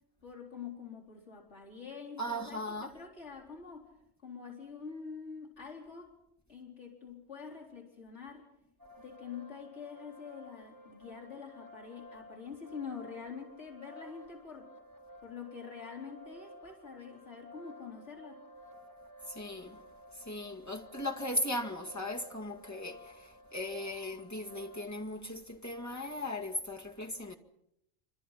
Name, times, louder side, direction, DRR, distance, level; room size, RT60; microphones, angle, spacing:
voice 1, 0.2-3.9 4.2-6.1 6.5-8.5 9.0-14.7 15.2-18.4, left 6 dB, 60° left, 4.5 m, -46 dB
voice 2, 2.2-2.9 19.3-19.8 20.3-27.4, left 1 dB, 15° left, 2.1 m, -37 dB
sound 1, 8.8-24.9, equal, 15° right, 5.3 m, -53 dB
27.0 x 26.0 x 5.8 m
omnidirectional pair, 1.3 m